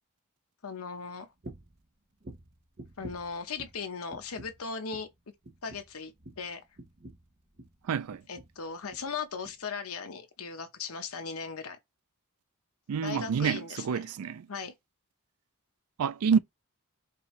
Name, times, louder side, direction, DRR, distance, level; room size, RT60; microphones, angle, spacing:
voice 1, 0.6-1.3 3.0-5.1 5.6-6.6 8.3-11.8 13.0-14.0 14.5-14.7, left 5 dB, 75° left, 0.9 m, -38 dB
sound 1, 1.4-1.8 2.2-3.8 4.1-4.7 4.9-5.2 5.4-7.8 8.1-8.6 8.9-9.1 9.4-9.6, right 1 dB, 40° right, 0.8 m, -48 dB
voice 2, 7.8-8.2 12.9-14.5 16.0-16.4, right 6 dB, 80° right, 0.4 m, -28 dB
5.4 x 2.6 x 3.1 m
head